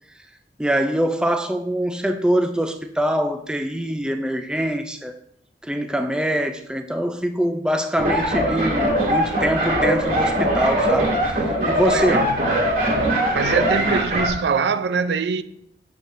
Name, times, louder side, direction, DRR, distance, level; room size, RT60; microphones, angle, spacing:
voice 1, 0.6-5.1 5.6-11.1 11.7-12.3, equal, 5° right, 0.3 m, -23 dB
sound 1, 8.0-14.3, equal, 55° right, 2.2 m, -21 dB
voice 2, 11.6-12.4 13.3-15.4, right 5 dB, 75° right, 0.4 m, -23 dB
8.5 x 6.5 x 2.5 m
head